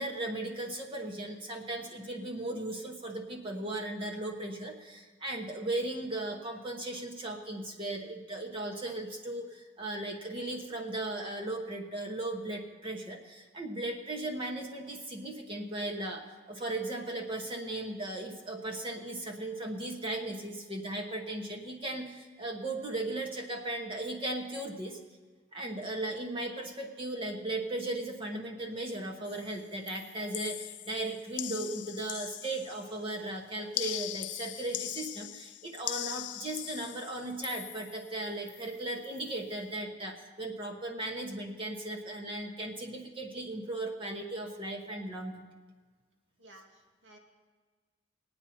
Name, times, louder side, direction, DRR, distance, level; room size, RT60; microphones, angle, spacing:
voice 1, 0.0-25.0 25.5-45.3, right 2 dB, 30° right, 2 dB, 1.1 m, -37 dB
sound 1, 29.3-29.6 29.9-33.0 33.7-38.1 38.5-38.8 39.0-39.3, left 16 dB, 70° left, 0.3 m, -40 dB
voice 2, 46.4-47.2, right 1 dB, 90° right, 2 dB, 2.1 m, -55 dB
20.5 x 8.9 x 4.3 m, 1.4 s
head